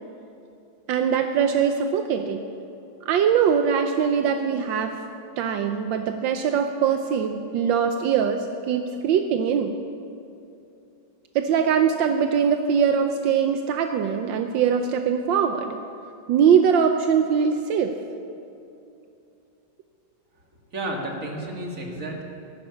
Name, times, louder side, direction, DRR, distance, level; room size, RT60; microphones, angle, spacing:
voice 1, 0.9-2.5 3.0-5.0 5.4-9.8 11.3-15.8 16.3-18.0, right 7 dB, 80° right, 6 dB, 1.4 m, -22 dB
voice 2, 20.7-22.2, right 1 dB, 45° right, 0 dB, 2.4 m, -31 dB
15.0 x 11.5 x 7.1 m, 2.7 s
omnidirectional pair, 2.1 m